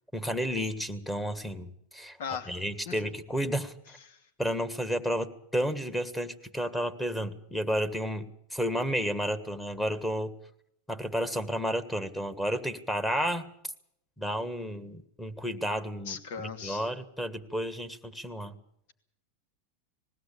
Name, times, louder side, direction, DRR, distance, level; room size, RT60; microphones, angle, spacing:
voice 1, 0.1-2.2 2.5-3.7 4.4-10.3 10.9-13.5 14.2-18.5, equal, 5° left, 10 dB, 1.7 m, -32 dB
voice 2, 2.2-2.6 2.9-3.0 4.1-4.2 16.1-16.9, left 7 dB, 70° left, 8 dB, 2.6 m, -38 dB
20.5 x 16.0 x 8.5 m, 0.75 s
supercardioid pair, 130°, 0 cm